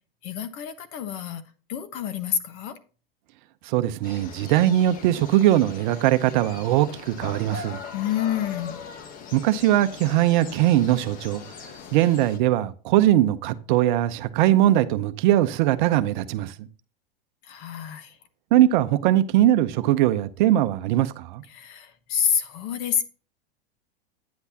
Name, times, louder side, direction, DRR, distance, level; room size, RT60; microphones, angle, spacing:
voice 1, 0.2-1.4 1.7-2.8 7.9-8.8 17.4-18.2 21.5-23.0, left 9 dB, 45° left, 1.2 m, -28 dB
voice 2, 3.6-7.8 9.3-11.4 11.9-16.7 18.5-21.4, right 13 dB, 55° right, 0.8 m, -21 dB
sound 1, 4.0-12.4, left 6 dB, 30° left, 0.9 m, -40 dB
9.5 x 8.0 x 2.8 m
supercardioid pair, 135°, 29 cm